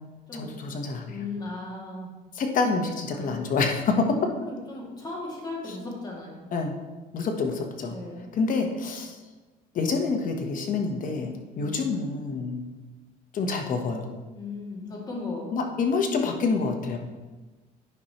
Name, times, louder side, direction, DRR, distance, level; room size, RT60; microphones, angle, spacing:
voice 1, 0.3-1.2 2.3-4.0 6.5-6.7 7.1-8.0 8.3-9.2 9.7-12.6 13.3-14.1 15.5-17.0, left 4 dB, 55° left, 4 dB, 1.1 m, -27 dB
voice 2, 1.1-2.1 3.1-3.7 4.4-6.5 7.9-8.3 11.5-12.0 14.3-15.6, left 3 dB, 25° left, -4 dB, 2.4 m, -37 dB
9.5 x 5.7 x 3.0 m, 1.2 s
cardioid pair, 110°, 17 cm